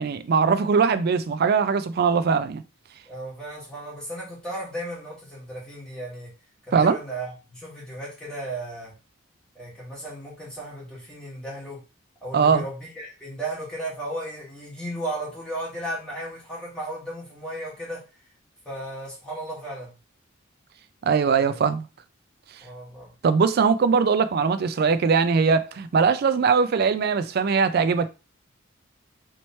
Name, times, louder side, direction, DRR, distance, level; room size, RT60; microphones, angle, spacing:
voice 1, 0.0-2.6 6.7-7.0 12.3-12.6 21.0-21.9 23.2-28.1, right 5 dB, 50° right, 0.3 m, -21 dB
voice 2, 3.1-6.3 6.7-8.9 9.5-11.8 12.2-18.0 18.6-19.9 21.3-21.6 22.6-23.1, right 1 dB, 5° left, 1.4 m, -35 dB
3.1 x 2.9 x 4.2 m
head